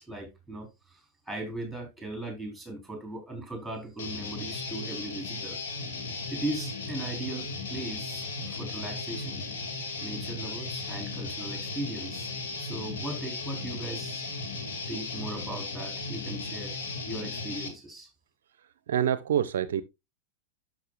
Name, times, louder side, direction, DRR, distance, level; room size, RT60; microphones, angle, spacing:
voice 1, 0.0-5.6 6.3-9.4 10.0-12.3 12.6-14.2 14.9-16.8 17.1-18.1, right 1 dB, ahead, 4.4 m, -38 dB
Guitar, 4.0-17.7, left 3 dB, 60° left, 2.5 m, -36 dB
voice 2, 18.6-19.8, right 9 dB, 60° right, 0.5 m, -27 dB
12.0 x 6.3 x 2.5 m
figure-of-eight pair, 90°, 0 cm